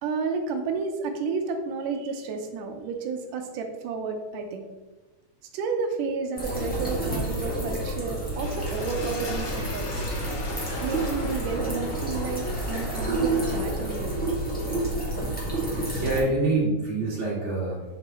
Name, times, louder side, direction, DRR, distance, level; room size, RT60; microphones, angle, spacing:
voice 1, 0.0-4.6 5.5-9.9 10.8-14.1, right 5 dB, 80° right, 5 dB, 2.4 m, -31 dB
sound 1, 6.4-16.2, right 1 dB, 5° left, 0.7 m, -29 dB
sound 2, 8.4-14.4, left 1 dB, 75° left, 1.0 m, -38 dB
voice 2, 15.6-17.8, right 2 dB, 25° right, -7 dB, 2.3 m, -26 dB
7.5 x 5.8 x 3.1 m, 1.2 s
omnidirectional pair, 3.7 m